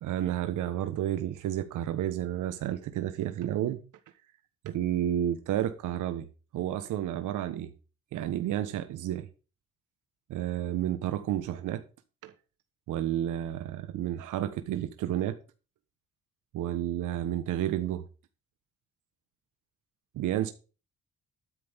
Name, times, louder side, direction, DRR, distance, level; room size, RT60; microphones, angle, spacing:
voice 1, 0.0-3.8 4.6-6.3 6.5-7.7 8.1-9.3 10.3-11.8 12.2-12.3 12.9-15.4 16.5-18.0 20.1-20.5, right 12 dB, 85° right, 1.2 m, -31 dB
13.0 x 9.5 x 3.6 m
cardioid pair, 90°, 30 cm